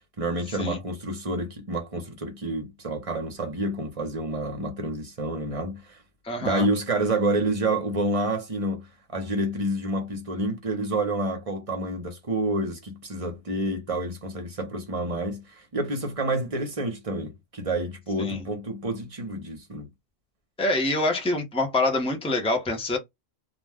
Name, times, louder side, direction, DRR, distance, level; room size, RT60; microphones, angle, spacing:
voice 1, 0.2-6.0 6.4-8.8 9.1-15.4 15.7-19.9, right 1 dB, 35° right, 0.8 m, -28 dB
voice 2, 6.2-6.7 18.2-18.4 20.6-23.0, left 2 dB, 5° left, 0.7 m, -25 dB
2.4 x 2.2 x 3.4 m
omnidirectional pair, 1.1 m